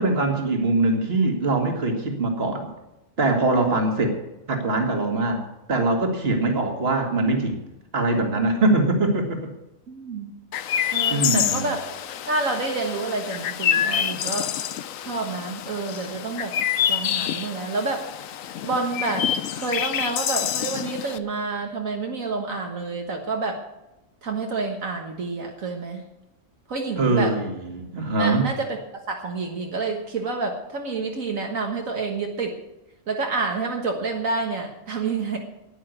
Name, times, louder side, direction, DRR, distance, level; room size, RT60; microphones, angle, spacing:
voice 1, 0.0-2.7 3.2-4.2 4.5-7.6 7.9-9.5 10.7-10.8 11.1-11.7 27.0-28.5, right 2 dB, 45° right, 4 dB, 2.2 m, -22 dB
voice 2, 3.5-3.8 9.9-10.3 10.9-11.8 12.3-14.5 15.0-16.5 16.9-18.1 18.6-19.3 19.5-23.6 24.2-26.0 26.7-27.3 28.2-28.8 29.1-32.6 33.1-35.4, right 3 dB, 70° right, 2 dB, 1.9 m, -28 dB
Chirp tweet, 10.5-21.2, left 10 dB, 75° left, 1.1 m, -27 dB
10.5 x 10.0 x 9.2 m, 0.94 s
omnidirectional pair, 1.4 m